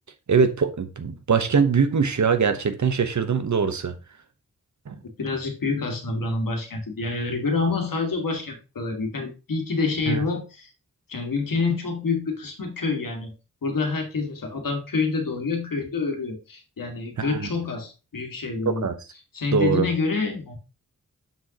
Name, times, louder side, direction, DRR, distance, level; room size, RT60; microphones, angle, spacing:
voice 1, 0.3-3.9 4.9-5.0 10.1-10.2 17.2-17.5 18.7-18.9 19.5-19.9, right 6 dB, 60° right, 1.0 m, -22 dB
voice 2, 5.2-10.7 11.1-13.3 13.6-18.9 19.3-20.6, left 4 dB, 80° left, 1.9 m, -27 dB
7.2 x 6.3 x 2.9 m
wide cardioid pair, 85°, 33 cm